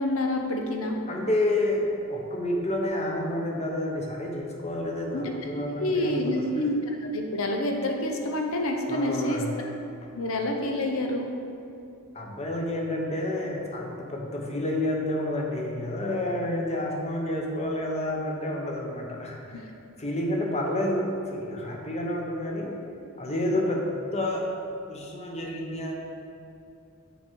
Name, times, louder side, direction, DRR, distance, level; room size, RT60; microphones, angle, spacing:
voice 1, 0.0-1.0 5.1-9.7 10.1-11.3 19.5-19.6, left 1 dB, 75° left, 2 dB, 0.8 m, -28 dB
voice 2, 1.1-6.5 8.9-9.6 11.0-11.1 12.1-19.6 20.0-22.8 23.2-24.5 24.9-25.9, left 1 dB, 30° left, -1 dB, 0.9 m, -29 dB
7.2 x 4.9 x 4.5 m, 2.5 s
head